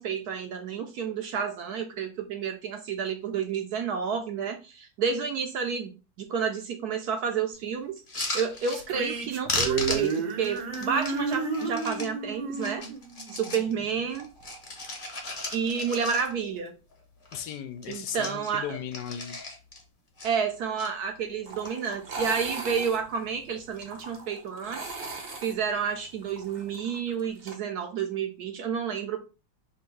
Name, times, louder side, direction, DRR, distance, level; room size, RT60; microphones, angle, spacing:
voice 1, 0.0-5.9 6.2-7.9 8.3-12.8 13.3-14.3 15.5-16.7 17.9-18.8 20.2-24.8 25.4-29.2, right 6 dB, 70° right, 5 dB, 1.0 m, -30 dB
sound 1, 8.0-9.2 9.5-12.1 12.5-13.7 14.1-16.6 16.9-17.0 17.2-17.5 17.8-19.8 20.2-20.9 21.4-21.9 22.2-22.7 23.6-23.9, left 2 dB, 35° left, 1.0 m, -36 dB
sound 2, 8.7-14.1, right 5 dB, 85° right, 1.6 m, -32 dB
voice 2, 17.3-19.4, left 9 dB, 75° left, 8 dB, 1.1 m, -36 dB
sound 3, 21.5-27.6, right 3 dB, 50° right, 0.7 m, -39 dB
3.5 x 2.6 x 4.4 m, 0.30 s
omnidirectional pair, 2.0 m